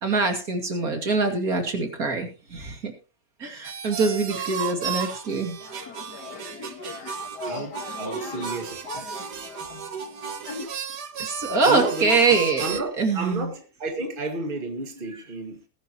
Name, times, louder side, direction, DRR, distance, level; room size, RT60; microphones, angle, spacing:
voice 1, 0.0-2.9 3.4-5.6 11.2-13.5, right 4 dB, 60° right, 2.9 m, -24 dB
sound 1, 3.6-12.8, right 7 dB, 80° right, 1.8 m, -34 dB
sound 2, 5.6-10.7, left 5 dB, 75° left, 2.3 m, -39 dB
voice 2, 7.4-9.3 11.4-12.1 12.6-15.6, right 2 dB, 30° right, 2.0 m, -32 dB
20.5 x 10.5 x 3.0 m
omnidirectional pair, 1.8 m